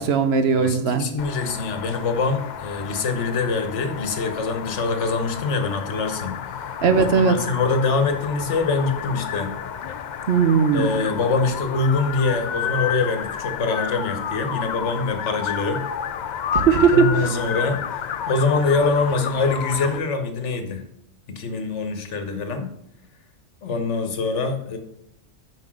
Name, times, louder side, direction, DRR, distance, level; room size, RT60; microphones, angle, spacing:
voice 1, 0.0-1.0 6.8-7.4 10.3-10.9 16.5-17.1, right 6 dB, 65° right, 9 dB, 1.0 m, -18 dB
voice 2, 0.5-9.6 10.7-15.8 16.9-20.8 21.3-22.7 23.6-24.8, left 4 dB, 80° left, 7 dB, 1.4 m, -24 dB
sound 1, 1.2-20.0, left 8 dB, 60° left, 0.5 m, -31 dB
5.8 x 5.2 x 6.2 m, 0.80 s
omnidirectional pair, 1.2 m